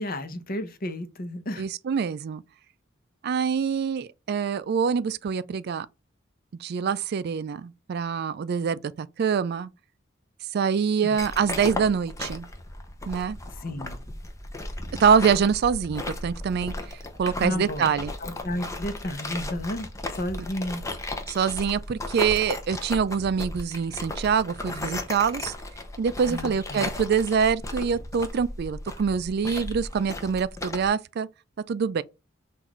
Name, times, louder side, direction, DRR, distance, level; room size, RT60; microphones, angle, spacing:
voice 1, 0.0-1.6 11.0-11.2 13.6-14.0 17.4-17.9 18.2-19.9 20.2-20.8 26.3-26.9, left 1 dB, 50° left, 0.8 m, -32 dB
voice 2, 1.6-2.4 3.2-5.9 6.6-9.7 10.5-12.5 13.1-13.4 15.0-18.1 21.3-25.5 26.0-31.3 31.7-32.0, right 6 dB, 55° right, 0.3 m, -25 dB
sound 1, 11.2-30.9, left 2 dB, 15° left, 0.6 m, -35 dB
5.9 x 2.5 x 3.0 m
head